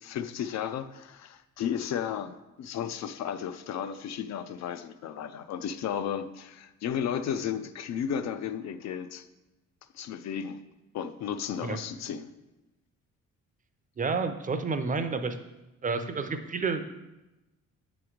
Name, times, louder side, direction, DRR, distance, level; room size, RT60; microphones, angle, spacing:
voice 1, 0.0-9.3 9.9-10.6 10.9-12.3, left 8 dB, 65° left, 10 dB, 0.4 m, -34 dB
voice 2, 14.0-15.4 15.8-16.8, right 4 dB, 25° right, 9 dB, 0.5 m, -30 dB
6.9 x 3.1 x 4.9 m, 1.0 s
cardioid pair, 90°, 30 cm